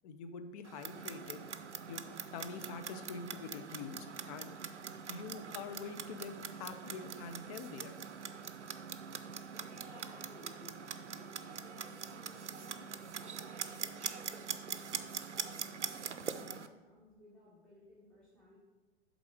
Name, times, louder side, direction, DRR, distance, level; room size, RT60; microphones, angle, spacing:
voice 1, 0.0-4.6 5.1-8.0, left 5 dB, 35° left, 8 dB, 0.6 m, -46 dB
Clock, 0.6-16.7, right 6 dB, 85° right, 0.5 m, -43 dB
voice 2, 9.5-18.6, equal, 5° left, -9 dB, 1.5 m, -59 dB
8.1 x 3.7 x 4.9 m, 1.2 s
figure-of-eight pair, 100°, 34 cm